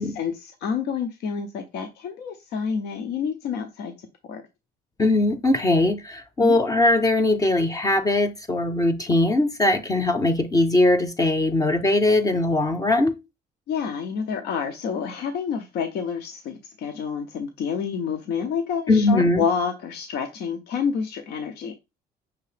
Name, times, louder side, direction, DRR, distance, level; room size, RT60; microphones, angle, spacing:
voice 1, 0.0-3.9 4.3-4.4 6.4-6.6 13.7-21.7, left 6 dB, 75° left, 0.7 m, -28 dB
voice 2, 5.0-13.1 18.9-19.4, left 2 dB, 20° left, 0.7 m, -20 dB
5.9 x 2.8 x 3.2 m
cardioid pair, 110°, 17 cm